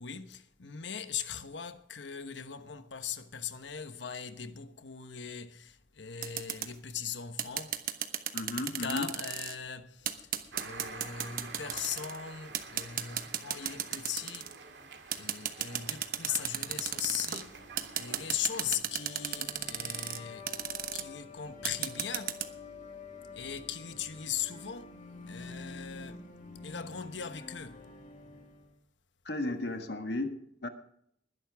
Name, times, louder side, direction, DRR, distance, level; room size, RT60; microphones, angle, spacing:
voice 1, 0.0-7.8 8.8-14.5 15.2-17.6 17.9-20.5 20.9-22.4 23.3-24.9 25.3-26.2 26.6-27.8, left 8 dB, 85° left, 1.1 m, -39 dB
sound 1, 6.2-6.7 7.4-9.6 10.1-12.2 12.5-14.6 15.1-17.4 17.8-20.2 20.5-21.0 21.7-22.5, right 10 dB, 50° right, 1.1 m, -34 dB
voice 2, 8.3-9.1 29.2-30.7, left 2 dB, 70° left, 1.5 m, -34 dB
sound 2, 10.5-18.8, right 4 dB, 85° right, 2.3 m, -49 dB
sound 3, 15.9-28.8, left 3 dB, 40° left, 2.6 m, -49 dB
20.5 x 11.0 x 3.5 m
head